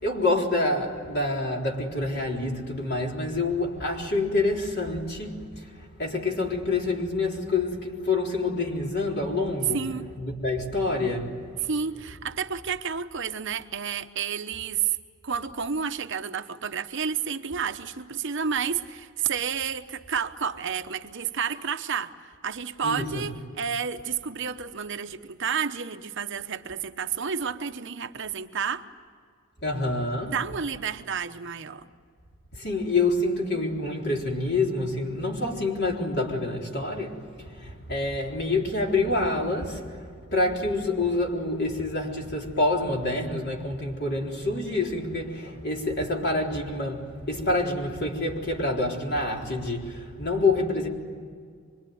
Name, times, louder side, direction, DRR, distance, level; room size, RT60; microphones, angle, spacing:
voice 1, 0.0-5.7 6.0-9.8 10.2-11.3 22.8-23.2 29.6-30.3 32.5-39.8 40.3-50.9, left 2 dB, 50° left, 4.0 m, -27 dB
voice 2, 9.7-10.1 11.6-15.0 15.2-28.8 30.3-31.9, right 6 dB, 55° right, 1.0 m, -30 dB
25.5 x 24.0 x 9.4 m
head